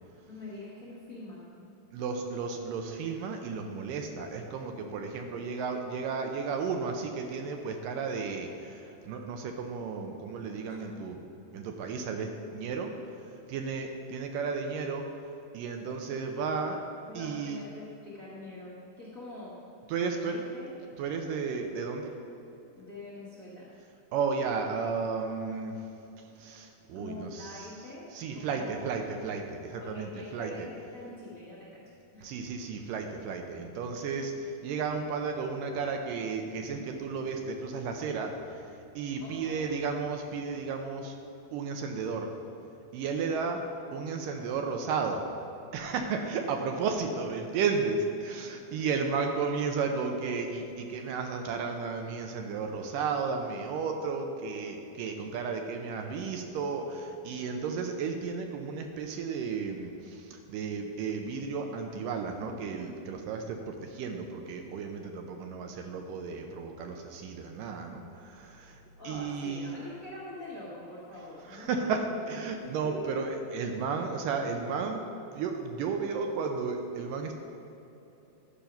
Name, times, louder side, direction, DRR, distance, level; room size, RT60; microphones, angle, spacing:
voice 1, 0.3-1.8 5.3-5.5 10.7-10.9 17.1-19.6 19.9-20.7 22.7-23.7 26.9-29.2 29.8-31.8 32.1-32.3 39.2-39.7 42.9-43.0 46.8-46.9 69.0-71.9 72.2-72.3 72.6-73.0, left 2 dB, 80° left, -8 dB, 0.7 m, -45 dB
voice 2, 1.9-11.2 11.5-13.2 13.5-15.1 15.5-16.8 17.1-17.6 19.9-20.4 21.0-22.1 24.1-25.8 26.4-27.7 28.1-30.7 32.2-41.2 41.5-42.3 42.9-43.6 43.9-45.2 45.7-69.7 71.5-75.1 75.3-77.3, right 5 dB, 80° right, 4 dB, 2.2 m, -33 dB
12.0 x 5.2 x 5.8 m, 3.0 s
omnidirectional pair, 4.2 m